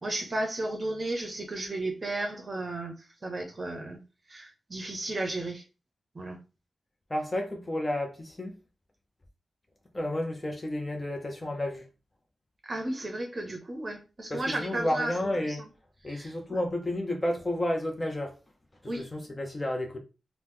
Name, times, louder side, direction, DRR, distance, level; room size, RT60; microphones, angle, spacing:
voice 1, 0.0-2.9 3.2-4.0 4.3-5.6 6.1-6.4 12.6-15.1 15.5-15.7 16.1-16.6 18.9-19.1, right 2 dB, 40° right, 0.6 m, -34 dB
voice 2, 7.1-8.5 9.9-11.8 14.3-15.7 16.0-18.3 18.8-20.0, left 1 dB, 25° left, 0.5 m, -31 dB
2.9 x 2.0 x 3.4 m
cardioid pair, 85°, 0 cm